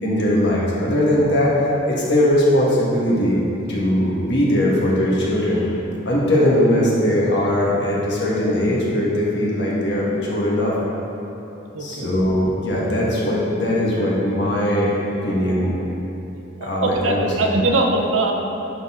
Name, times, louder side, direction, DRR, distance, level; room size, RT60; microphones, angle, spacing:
voice 1, 0.0-3.4 3.7-5.6 6.0-10.7 11.8-15.7 16.6-17.5, left 1 dB, 60° left, -5 dB, 1.5 m, -20 dB
voice 2, 11.7-12.1 16.8-18.3, right 2 dB, 80° right, 1 dB, 0.7 m, -21 dB
11.0 x 4.2 x 3.7 m, 3.0 s
head